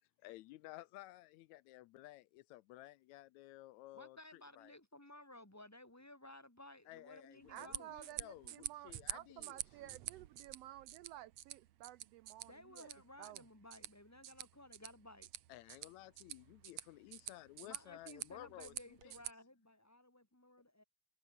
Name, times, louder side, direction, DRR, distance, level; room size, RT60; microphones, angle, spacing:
voice 1, 0.2-4.7 6.9-10.0 15.5-19.1, left 17 dB, 80° left, 1.8 m, -55 dB
voice 2, 3.9-7.9 12.5-15.3 17.6-20.8, left 1 dB, 5° left, 1.6 m, -57 dB
sound 1, 7.4-19.3, right 13 dB, 70° right, 2.1 m, -49 dB
voice 3, 7.5-12.9 13.2-13.4, right 14 dB, 85° right, 1.4 m, -53 dB
omnidirectional pair, 3.5 m